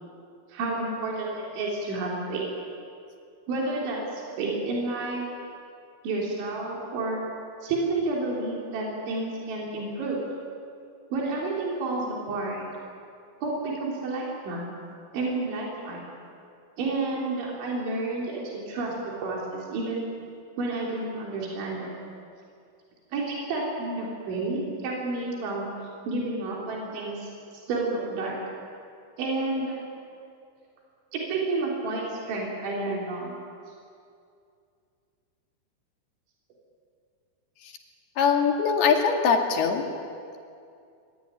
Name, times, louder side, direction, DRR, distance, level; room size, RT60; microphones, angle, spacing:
voice 1, 0.5-2.4 3.5-5.3 6.0-7.2 7.6-10.2 11.1-12.6 13.4-14.6 15.1-16.0 16.8-18.9 19.2-20.1 20.6-21.9 23.1-25.7 26.0-27.3 27.7-28.4 29.2-29.8 31.1-33.4, right 2 dB, 80° right, -3 dB, 6.3 m, -30 dB
voice 2, 38.2-39.8, left 6 dB, 60° left, 3 dB, 4.0 m, -22 dB
25.5 x 21.0 x 10.0 m, 2.4 s
omnidirectional pair, 5.3 m